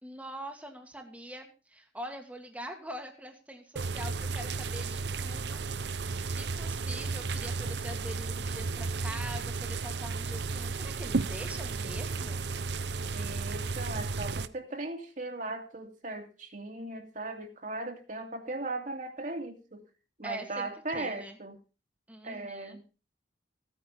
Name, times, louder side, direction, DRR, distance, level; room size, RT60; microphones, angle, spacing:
voice 1, 0.0-5.6 6.0-12.4 20.2-21.4 22.1-22.8, right 1 dB, 10° right, 3 dB, 1.7 m, -44 dB
sound 1, 3.8-14.5, right 4 dB, 70° right, 0.7 m, -33 dB
voice 2, 13.1-19.8 20.2-21.6 22.2-22.8, right 2 dB, 45° right, 4 dB, 2.4 m, -38 dB
15.5 x 9.3 x 5.5 m, 0.33 s
head